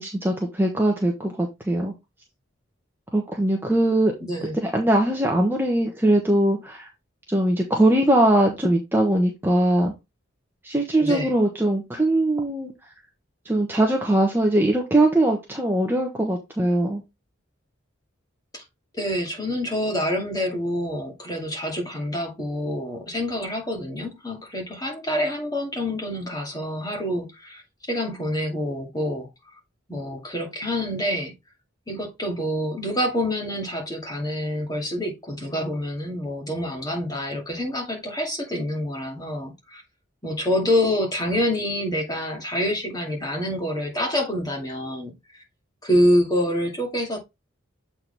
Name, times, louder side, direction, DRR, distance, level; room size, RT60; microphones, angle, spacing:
voice 1, 0.0-1.9 3.1-4.1 4.5-6.9 7.3-9.9 10.6-12.7 13.4-17.0, right 1 dB, 10° right, 1.1 m, -21 dB
voice 2, 4.2-4.5 11.0-11.3 18.5-18.6 19.0-27.6 27.9-29.3 29.9-31.3 31.9-39.8 40.2-45.1 45.8-47.2, equal, 20° left, 2.2 m, -26 dB
7.8 x 4.4 x 3.4 m
head